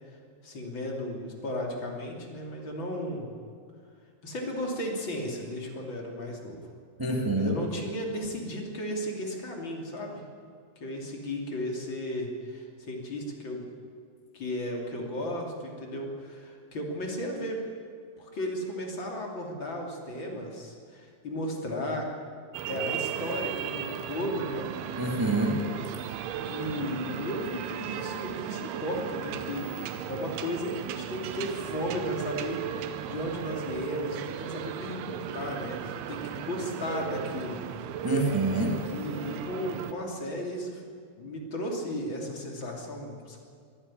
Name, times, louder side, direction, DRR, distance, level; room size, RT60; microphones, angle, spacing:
voice 1, 0.4-3.4 4.2-6.6 7.3-10.2 10.8-13.6 14.3-17.6 18.2-22.1 22.7-24.7 26.5-37.6 38.9-40.8 41.2-43.4, equal, 35° left, 0 dB, 3.1 m, -35 dB
voice 2, 7.0-7.6 25.0-25.7 38.0-38.8, right 2 dB, 25° right, 0 dB, 0.4 m, -26 dB
sound 1, 22.5-39.9, right 9 dB, 85° right, 2.9 m, -36 dB
23.0 x 13.0 x 9.9 m, 2.2 s
omnidirectional pair, 4.5 m